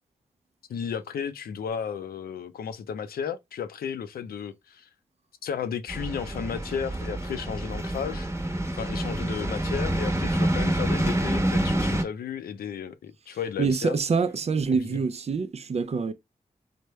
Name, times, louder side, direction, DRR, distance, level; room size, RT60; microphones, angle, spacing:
voice 1, 0.7-4.9 5.4-8.3 8.8-14.0 14.9-15.0, left 7 dB, 85° left, 0.5 m, -34 dB
sound 1, 5.9-12.0, right 1 dB, 15° right, 1.0 m, -27 dB
voice 2, 13.6-16.1, right 5 dB, 45° right, 0.5 m, -26 dB
3.3 x 2.1 x 3.1 m
cardioid pair, 45°, 15 cm